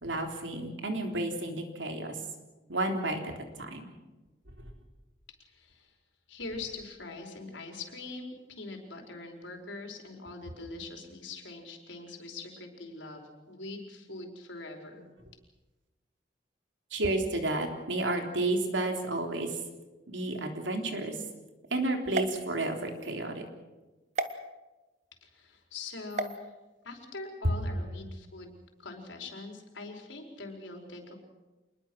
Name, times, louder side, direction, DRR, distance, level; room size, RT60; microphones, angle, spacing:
voice 1, 0.0-2.2 2.7-3.3 3.6-3.8 16.9-19.6 20.1-21.2 21.7-23.4, right 2 dB, 85° right, 4 dB, 3.5 m, -31 dB
voice 2, 5.5-5.9 6.3-15.1 25.2-26.5 26.8-28.5 28.8-31.2, left 3 dB, 90° left, 2 dB, 4.8 m, -43 dB
sound 1, 22.1-23.1 24.1-24.3 26.1-26.4, right 2 dB, 40° right, 1.2 m, -34 dB
26.5 x 21.0 x 6.3 m, 1.1 s
head